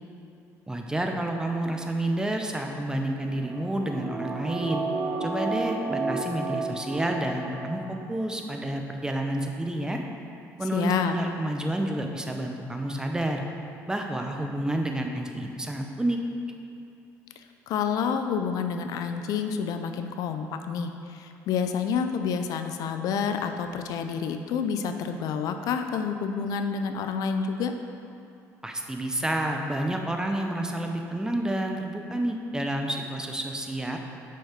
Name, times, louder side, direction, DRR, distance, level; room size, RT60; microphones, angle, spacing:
voice 1, 0.7-4.8 5.2-7.8 8.1-10.0 10.6-13.4 13.9-16.2 28.6-34.0, right 1 dB, 10° right, 3 dB, 0.7 m, -29 dB
sound 1, 3.4-8.2 8.5-8.6, right 3 dB, 50° right, 0.8 m, -32 dB
voice 2, 10.7-11.1 17.4-27.7, left 6 dB, 70° left, 7 dB, 0.4 m, -29 dB
5.7 x 5.3 x 5.0 m, 2.7 s
cardioid pair, 95°, 7 cm